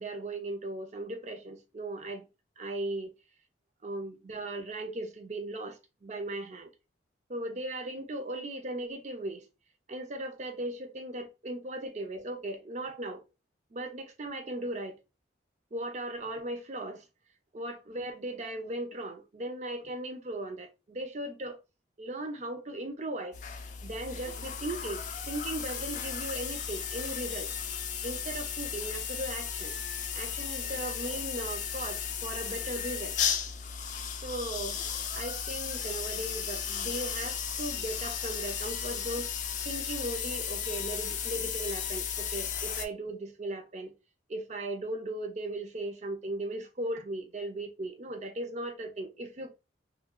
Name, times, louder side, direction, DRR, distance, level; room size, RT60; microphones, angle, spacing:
voice 1, 0.0-2.3 2.6-3.2 3.8-6.7 7.3-9.5 9.9-13.2 13.7-15.0 15.7-17.0 17.5-21.6 22.0-23.4 23.8-27.5 28.0-29.7 30.1-33.1 34.2-34.8 35.1-39.3 39.6-43.9 44.3-49.5, right 1 dB, 40° right, 0.5 m, -37 dB
sound 1, 23.3-42.9, left 7 dB, 40° left, 0.4 m, -35 dB
2.3 x 2.2 x 3.6 m
head